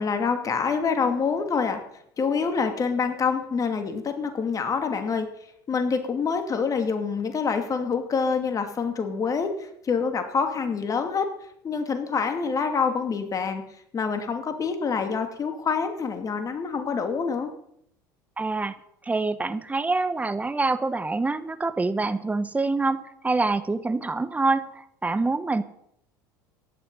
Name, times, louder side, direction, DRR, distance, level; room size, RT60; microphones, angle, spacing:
voice 1, 0.0-1.8 2.2-5.3 5.7-11.3 11.6-13.6 13.9-17.5, left 5 dB, 35° left, 7 dB, 2.5 m, -26 dB
voice 2, 18.4-18.8 19.0-25.6, right 3 dB, 15° right, 13 dB, 1.0 m, -26 dB
15.5 x 11.0 x 5.6 m, 0.72 s
hypercardioid pair, 75°, 11 cm